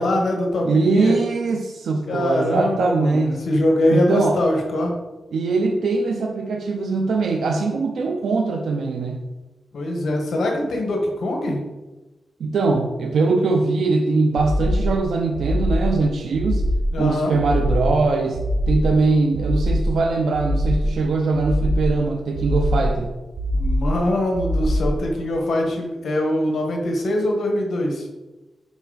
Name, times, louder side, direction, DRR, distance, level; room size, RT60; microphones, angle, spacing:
voice 1, 0.0-1.1 2.1-4.9 9.7-11.6 16.9-17.3 23.5-28.1, left 1 dB, 75° left, 1 dB, 1.5 m, -22 dB
voice 2, 0.6-3.4 3.9-4.4 5.3-9.2 12.4-16.7 17.0-18.4 18.7-23.1, right 3 dB, 80° right, 2 dB, 0.7 m, -21 dB
sound 1, 14.4-15.0 15.3-16.0 16.3-17.0 17.4-18.0 18.3-19.0 19.3-20.0 20.3-21.0 21.4-22.0 22.4-23.0 23.4-24.0 24.4-25.0, equal, 55° right, 1.0 m, -22 dB
7.1 x 5.4 x 4.1 m, 1.1 s
wide cardioid pair, 135°, 0 cm